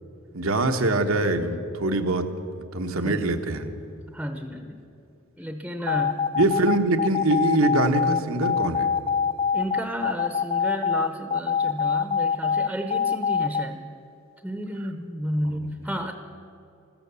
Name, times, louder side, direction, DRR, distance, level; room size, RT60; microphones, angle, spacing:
voice 1, 0.3-2.3 2.7-3.7 6.4-8.9, right 2 dB, 90° right, 6 dB, 1.3 m, -23 dB
voice 2, 4.1-4.8 5.4-6.2 9.5-13.8 14.4-16.1, equal, 5° right, 6 dB, 0.7 m, -32 dB
sound 1, 5.9-13.6, left 6 dB, 25° left, 0.4 m, -24 dB
14.5 x 14.0 x 7.0 m, 2.8 s
head